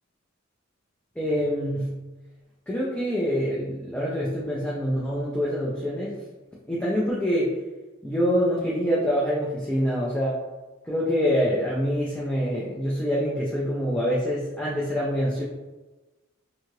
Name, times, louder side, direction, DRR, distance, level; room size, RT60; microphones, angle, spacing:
voice 1, 1.2-2.0 2.7-6.2 6.7-7.5 8.0-10.4 10.8-15.4, equal, 5° left, -6 dB, 0.3 m, -25 dB
2.6 x 2.3 x 3.0 m, 1.1 s
head